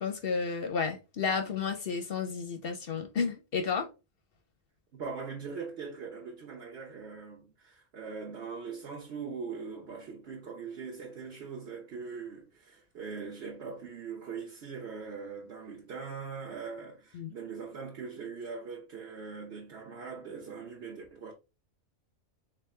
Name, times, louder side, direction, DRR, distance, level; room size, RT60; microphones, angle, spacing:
voice 1, 0.0-3.9 17.1-17.3, left 5 dB, 55° left, 0.7 m, -32 dB
voice 2, 4.9-21.3, right 5 dB, 55° right, 1.1 m, -41 dB
3.8 x 3.2 x 3.1 m
omnidirectional pair, 1.4 m